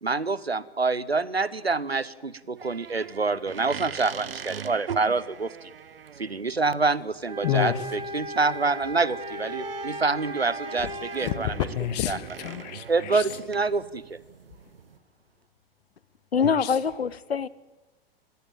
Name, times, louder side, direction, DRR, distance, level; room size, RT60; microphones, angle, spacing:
voice 1, 0.0-5.5 6.2-11.6 12.1-12.2 12.9-14.2, right 3 dB, 90° right, 0.8 m, -26 dB
sound 1, 2.6-15.0, right 7 dB, 70° right, 1.0 m, -42 dB
sound 2, 7.2-11.4, right 1 dB, 15° right, 3.1 m, -36 dB
voice 2, 7.4-7.8 11.2-11.3 11.7-13.2 16.4-16.7, left 13 dB, 45° left, 1.5 m, -29 dB
voice 3, 16.3-17.5, left 6 dB, 80° left, 0.8 m, -24 dB
21.0 x 15.0 x 9.0 m
figure-of-eight pair, 100°, 30 cm